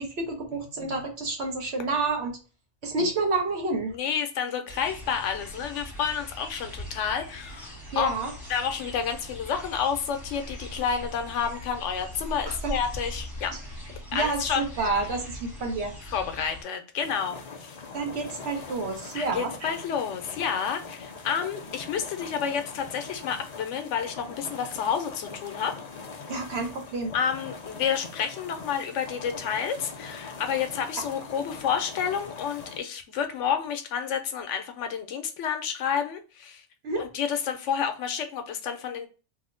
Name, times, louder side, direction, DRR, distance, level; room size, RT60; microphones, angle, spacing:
voice 1, 0.0-2.3 2.8-3.9 7.9-8.3 12.5-12.7 14.1-15.9 17.9-19.7 26.3-27.1 36.8-37.1, right 3 dB, 65° right, 1.0 m, -29 dB
voice 2, 3.9-8.1 8.5-13.5 14.1-14.7 16.0-17.7 19.1-25.7 27.1-36.6 36.9-39.1, left 7 dB, 85° left, 0.9 m, -30 dB
sound 1, 4.7-16.6, equal, 15° left, 0.8 m, -40 dB
sound 2, 17.0-32.8, left 4 dB, 50° left, 0.5 m, -42 dB
3.0 x 2.1 x 3.7 m
omnidirectional pair, 1.2 m